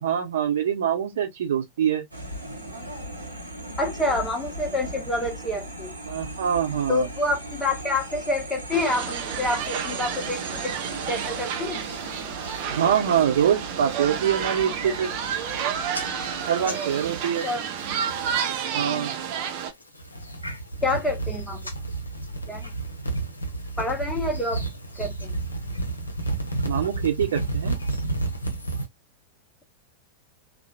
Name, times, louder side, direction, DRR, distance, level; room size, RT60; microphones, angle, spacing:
voice 1, 0.0-2.0 6.1-7.1 12.7-15.1 16.5-17.5 18.7-19.1 26.6-27.8, right 9 dB, 60° right, 0.9 m, -24 dB
sound 1, 2.1-16.4, right 1 dB, 85° right, 0.9 m, -38 dB
voice 2, 3.8-5.9 6.9-10.8 11.1-11.8 17.4-17.6 18.9-19.1 20.8-21.7 22.5-22.7 23.8-24.6 25.0-25.4, left 2 dB, 10° left, 1.0 m, -27 dB
sound 2, 8.7-19.7, right 8 dB, 45° right, 0.5 m, -30 dB
sound 3, 11.8-12.6 13.0-13.4 13.8-14.2 14.6-14.7 14.9-15.6 15.9-18.5 18.8-19.3 19.8-28.9, right 2 dB, 80° left, 0.6 m, -32 dB
2.9 x 2.3 x 2.3 m
figure-of-eight pair, 90°, 0 cm